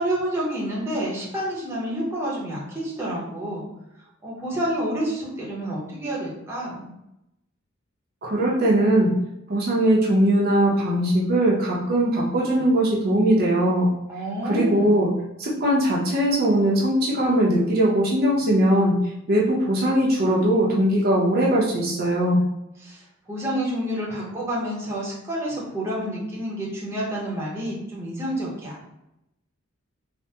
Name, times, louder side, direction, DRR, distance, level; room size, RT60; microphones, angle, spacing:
voice 1, 0.0-3.7 4.2-6.9 14.1-15.1 22.8-28.9, right 1 dB, 15° right, -5 dB, 0.7 m, -29 dB
voice 2, 8.2-9.1 9.5-13.9 14.5-15.1 15.4-18.9 19.3-22.4, right 1 dB, 50° right, -4 dB, 0.6 m, -20 dB
3.3 x 2.1 x 2.7 m, 0.86 s
head